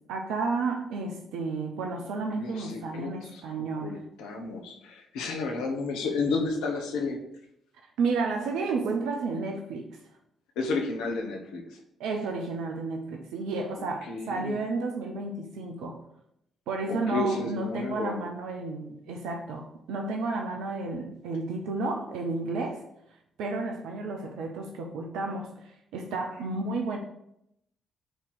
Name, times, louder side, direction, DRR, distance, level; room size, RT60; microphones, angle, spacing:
voice 1, 0.1-4.0 8.0-9.9 12.0-16.0 16.7-22.8 23.4-27.0, right 3 dB, 80° right, 2 dB, 0.7 m, -32 dB
voice 2, 2.4-3.4 3.8-7.2 10.6-11.8 14.1-14.6 16.9-18.2, left 3 dB, 80° left, 3 dB, 1.2 m, -32 dB
8.1 x 3.1 x 6.0 m, 0.77 s
hypercardioid pair, 50°, 0 cm